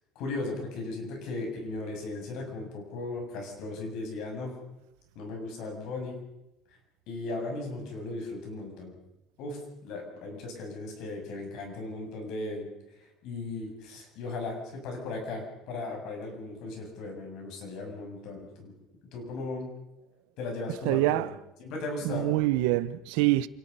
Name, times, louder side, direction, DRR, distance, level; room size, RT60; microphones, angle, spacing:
voice 1, 0.2-4.5 5.1-6.2 7.1-8.9 9.4-12.7 13.0-18.7 19.1-19.7 20.4-21.3 21.6-22.3, left 2 dB, 55° left, 7.5 m, -37 dB
voice 2, 20.8-21.3 22.0-23.5, right 17 dB, 85° right, 0.8 m, -25 dB
28.0 x 18.0 x 5.6 m
cardioid pair, 170°, 0 cm